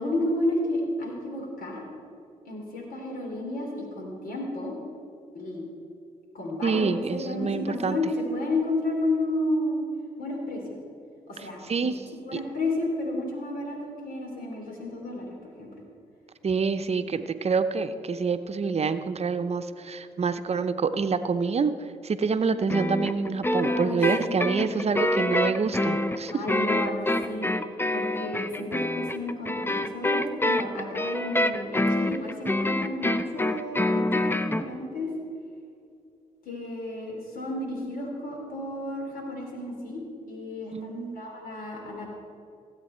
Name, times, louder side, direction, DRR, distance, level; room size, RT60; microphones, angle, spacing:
voice 1, 0.0-1.8 2.5-4.7 5.3-5.6 6.3-6.8 7.1-9.8 10.2-10.6 11.3-11.9 12.2-15.7 23.7-24.6 24.9-25.3 26.3-27.5 27.9-35.1 36.4-40.0 40.3-42.1, left 1 dB, 75° left, 0 dB, 3.0 m, -32 dB
voice 2, 6.6-8.0 11.4-12.0 12.3-12.4 16.4-21.7 22.0-26.4 40.7-41.2, right 5 dB, 45° right, 10 dB, 0.7 m, -27 dB
sound 1, 22.7-34.7, left 1 dB, 15° left, 0.6 m, -26 dB
17.0 x 8.1 x 4.4 m, 2.6 s
supercardioid pair, 55°, 15 cm